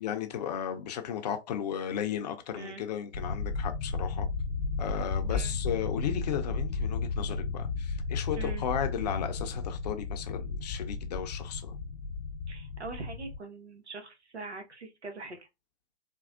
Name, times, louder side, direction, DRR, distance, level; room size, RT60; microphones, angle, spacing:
voice 1, 0.0-4.3 4.8-11.7, left 9 dB, 40° left, 0.6 m, -35 dB
voice 2, 2.5-2.8 5.3-5.6 8.4-8.6 12.5-15.5, right 3 dB, 80° right, 1.2 m, -42 dB
sound 1, 3.1-13.4, left 4 dB, 65° left, 0.9 m, -34 dB
4.3 x 2.3 x 2.4 m
figure-of-eight pair, 125°, 33 cm